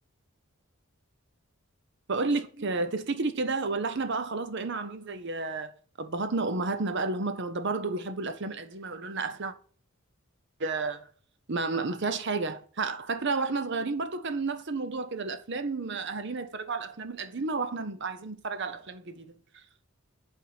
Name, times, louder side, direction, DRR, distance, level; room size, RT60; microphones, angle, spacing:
voice 1, 2.1-5.7 6.0-9.5 10.6-11.1 11.5-19.3, right 3 dB, 55° right, 0.8 m, -31 dB
8.6 x 3.8 x 5.7 m
head